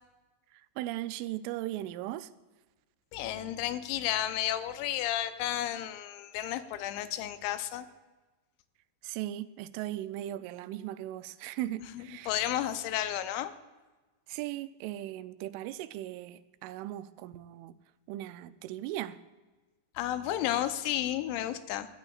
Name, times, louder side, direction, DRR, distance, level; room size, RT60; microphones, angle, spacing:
voice 1, 0.5-2.3 9.0-12.3 14.3-17.8 18.1-19.2, right 14 dB, 90° right, 3.1 m, -38 dB
voice 2, 3.1-7.9 12.0-13.5 20.0-21.9, left 12 dB, 80° left, 2.9 m, -32 dB
21.5 x 14.0 x 2.4 m
omnidirectional pair, 5.5 m